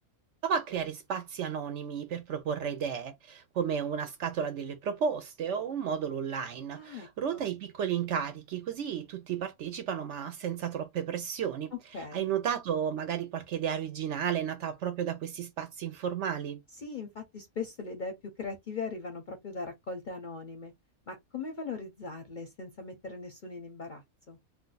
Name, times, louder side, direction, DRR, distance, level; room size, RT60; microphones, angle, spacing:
voice 1, 0.4-11.7 12.1-16.6, right 8 dB, 65° right, 0.8 m, -33 dB
voice 2, 6.7-7.4 11.9-12.3 16.8-20.7 21.1-24.4, left 4 dB, 50° left, 0.6 m, -40 dB
2.5 x 2.2 x 3.8 m
omnidirectional pair, 1.5 m